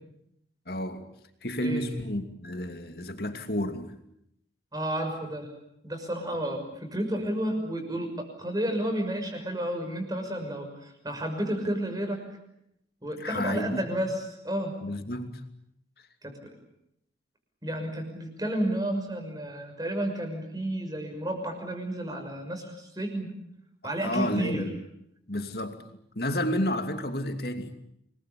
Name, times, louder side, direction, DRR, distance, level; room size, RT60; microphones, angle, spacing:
voice 1, 0.7-1.1 1.4-3.9 13.2-13.9 14.8-15.4 23.8-24.8 25.3-25.8 26.1-27.7, left 1 dB, 55° left, 2.7 m, -31 dB
voice 2, 4.7-5.5 5.8-12.2 13.0-14.8 16.2-16.5 17.6-23.3 23.8-24.7, right 1 dB, 20° right, 6.2 m, -31 dB
28.0 x 21.5 x 8.5 m
head